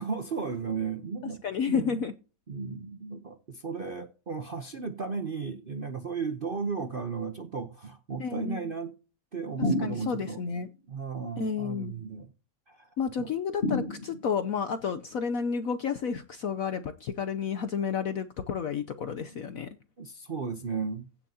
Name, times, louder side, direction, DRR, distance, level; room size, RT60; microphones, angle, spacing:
voice 1, 0.0-2.0 2.5-8.9 9.3-10.4 10.9-12.3 12.7-13.3 19.3-19.4 20.0-21.1, right 5 dB, 50° right, 0.6 m, -35 dB
voice 2, 1.4-2.1 8.2-8.7 9.8-10.7 11.4-11.9 13.0-19.7, left 6 dB, 65° left, 0.9 m, -31 dB
sound 1, 9.6-10.5 13.6-14.5, left 1 dB, 40° left, 1.4 m, -30 dB
16.0 x 7.1 x 2.8 m
omnidirectional pair, 2.1 m